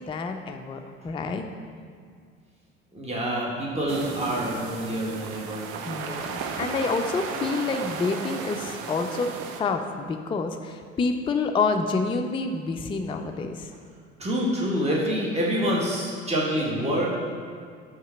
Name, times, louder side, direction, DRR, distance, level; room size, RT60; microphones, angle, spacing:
voice 1, 0.0-1.5 5.8-9.3 9.6-13.7, left 4 dB, 15° left, 5 dB, 0.4 m, -28 dB
voice 2, 2.9-5.7 14.2-17.1, equal, 15° right, -4 dB, 1.8 m, -26 dB
sound 1, 3.9-9.6, right 6 dB, 60° right, 0.8 m, -35 dB
5.6 x 5.3 x 5.8 m, 2.1 s
figure-of-eight pair, 60°, 39 cm